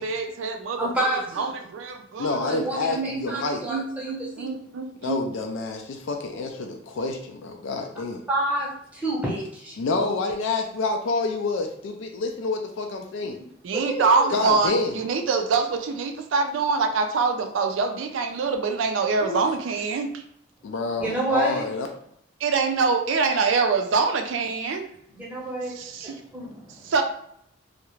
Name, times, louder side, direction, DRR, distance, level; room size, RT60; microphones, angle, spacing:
voice 1, 0.0-0.8 1.4-5.2 13.6-20.2 22.4-24.9 25.8-26.2 26.8-27.0, right 4 dB, 85° right, 5 dB, 0.4 m, -25 dB
voice 2, 0.8-1.5 2.4-4.5 8.3-9.8 13.9-14.3 19.2-19.5 21.0-21.6 25.1-26.9, right 1 dB, 10° right, -5 dB, 0.7 m, -29 dB
voice 3, 2.2-3.6 5.0-8.2 9.8-13.4 14.3-15.0 20.6-21.9, left 3 dB, 80° left, 3 dB, 0.3 m, -28 dB
2.3 x 2.0 x 3.0 m, 0.71 s
head